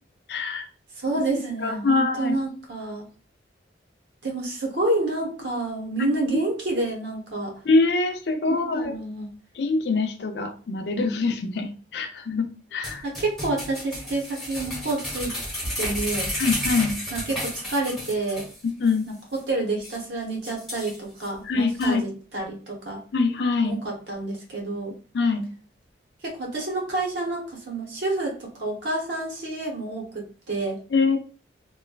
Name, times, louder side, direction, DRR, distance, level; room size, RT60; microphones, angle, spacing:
voice 1, 0.3-0.7 1.6-2.3 7.7-8.9 9.6-13.0 16.4-16.9 18.8-19.1 21.4-22.0 23.1-23.8 25.1-25.4 30.9-31.2, left 3 dB, 65° left, 7 dB, 0.4 m, -24 dB
voice 2, 1.0-3.0 4.2-7.5 8.5-9.3 13.0-15.3 15.8-16.3 17.1-18.5 19.1-23.0 23.6-24.9 26.2-30.8, right 2 dB, 75° right, -1 dB, 0.9 m, -29 dB
sound 1, 12.8-18.6 18.9-19.0 19.4-19.5 19.8-20.0 20.4-21.3 21.8-21.9, equal, ahead, 0.9 m, -32 dB
3.0 x 2.2 x 2.3 m, 0.39 s
head